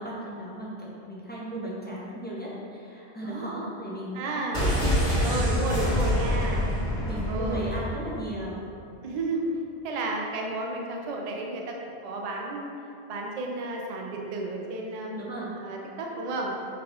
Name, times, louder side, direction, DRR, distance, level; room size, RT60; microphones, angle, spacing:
voice 1, 0.0-6.1 6.4-6.7 7.0-8.6 15.2-15.5, right 1 dB, 15° left, -7 dB, 0.4 m, -36 dB
voice 2, 4.1-4.7 5.2-6.6 7.3-7.7 9.0-9.4 9.8-12.7 13.1-15.2 15.6-16.5, right 2 dB, 50° right, 0 dB, 0.5 m, -32 dB
sound 1, 4.5-8.3 8.6-8.7, equal, 55° left, 1.8 m, -26 dB
5.8 x 2.4 x 3.4 m, 2.5 s
omnidirectional pair, 1.1 m